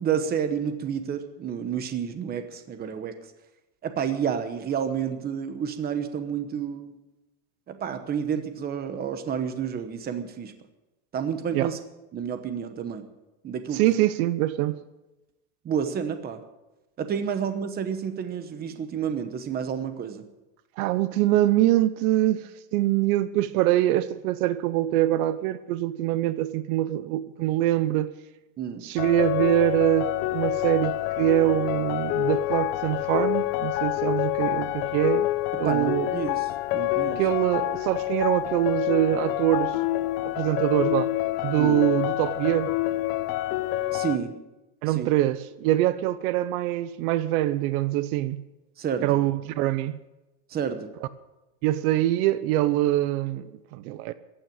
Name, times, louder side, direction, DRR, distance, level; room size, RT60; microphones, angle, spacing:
voice 1, 0.0-3.1 3.8-6.9 7.7-10.5 11.1-11.8 12.1-13.1 13.4-14.0 15.6-16.4 17.0-20.2 28.6-28.8 35.6-37.2 41.6-41.8 43.9-44.3 44.9-45.1 48.8-49.2 50.5-50.9, right 7 dB, 20° right, 1.0 m, -30 dB
voice 2, 13.7-14.8 20.8-28.1 28.8-35.3 35.6-36.1 37.1-39.8 40.2-41.1 41.4-42.7 44.8-48.4 49.0-50.0 51.6-54.1, right 14 dB, 65° right, 0.8 m, -24 dB
sound 1, 29.0-44.2, left 16 dB, 55° left, 0.9 m, -27 dB
15.0 x 9.1 x 8.9 m
cardioid pair, 170°, 48 cm